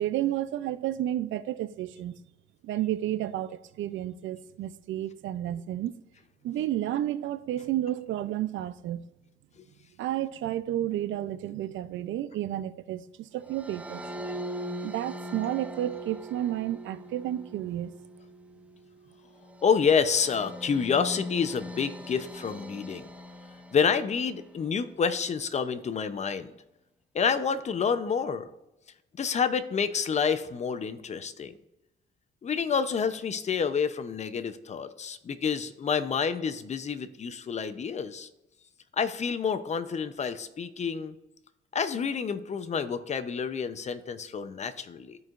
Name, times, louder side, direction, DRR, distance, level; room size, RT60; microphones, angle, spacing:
voice 1, 0.0-2.2 2.6-5.9 6.4-9.0 10.0-14.0 14.8-17.9, right 12 dB, 75° right, 0.5 m, -31 dB
sound 1, 13.5-24.8, equal, 5° right, 0.5 m, -41 dB
voice 2, 19.6-23.1 23.7-26.5 27.1-28.5 29.2-31.5 32.4-38.3 38.9-41.2 41.7-45.2, left 6 dB, 35° left, 0.6 m, -28 dB
13.0 x 4.7 x 2.4 m
cardioid pair, 90°, 20 cm